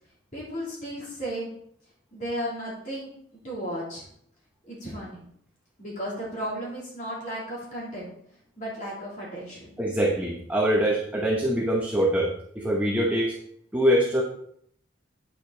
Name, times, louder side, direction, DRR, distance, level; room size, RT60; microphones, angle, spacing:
voice 1, 0.3-1.5 2.1-3.1 3.4-4.1 4.6-5.2 5.8-8.1 8.6-9.8, equal, 40° left, -6 dB, 3.3 m, -34 dB
voice 2, 9.8-13.4 13.7-14.2, equal, 10° right, -2 dB, 1.0 m, -24 dB
9.2 x 7.4 x 4.0 m, 0.69 s
head